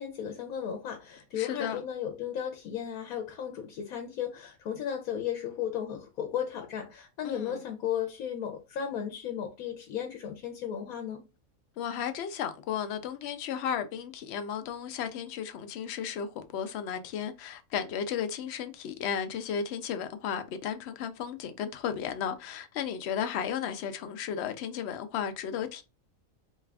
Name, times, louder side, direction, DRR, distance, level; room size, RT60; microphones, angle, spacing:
voice 1, 0.0-11.2, left 9 dB, 85° left, 1.1 m, -35 dB
voice 2, 1.4-1.8 7.2-7.6 11.8-25.8, left 8 dB, 65° left, 0.7 m, -34 dB
3.1 x 2.3 x 3.4 m
omnidirectional pair, 1.5 m